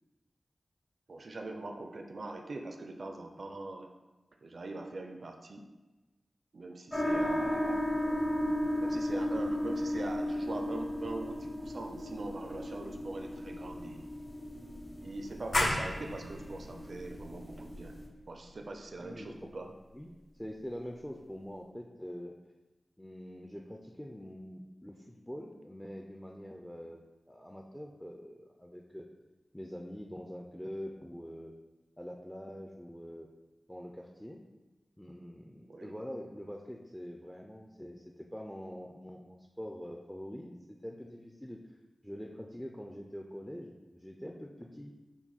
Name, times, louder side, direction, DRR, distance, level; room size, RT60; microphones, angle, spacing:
voice 1, 1.1-3.9 4.4-5.7 6.5-7.8 8.8-14.1 14.9-18.0 18.3-19.7 35.7-35.9, right 2 dB, 70° right, 4 dB, 0.4 m, -42 dB
sound 1, 6.9-18.0, left 1 dB, 25° left, 0.8 m, -35 dB
sound 2, 15.5-20.9, left 1 dB, 75° left, 0.8 m, -37 dB
voice 2, 19.0-22.4 23.0-27.0 27.3-29.1 29.5-31.5 32.0-33.3 33.7-34.4 35.0-41.6 42.0-44.9, equal, 5° left, 1 dB, 0.4 m, -44 dB
5.9 x 2.2 x 4.0 m, 1.1 s
wide cardioid pair, 60°, 0 cm